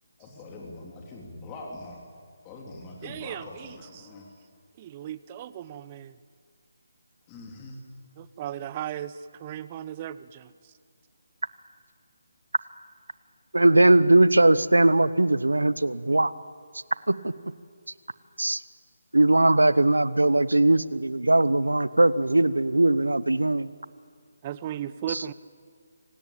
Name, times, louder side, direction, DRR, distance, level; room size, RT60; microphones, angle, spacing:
voice 1, 0.2-2.0 2.4-4.3 7.3-7.8, left 2 dB, 20° left, -1 dB, 3.3 m, -43 dB
voice 2, 3.0-4.1 4.8-6.1 8.2-10.5 24.4-25.3, right 11 dB, 25° right, 16 dB, 0.6 m, -36 dB
voice 3, 13.5-16.3 17.1-17.3 18.4-18.6 19.1-23.7 25.1-25.2, right 2 dB, 85° right, 18 dB, 0.9 m, -20 dB
26.0 x 18.0 x 8.9 m, 2.1 s
figure-of-eight pair, 150°, 0 cm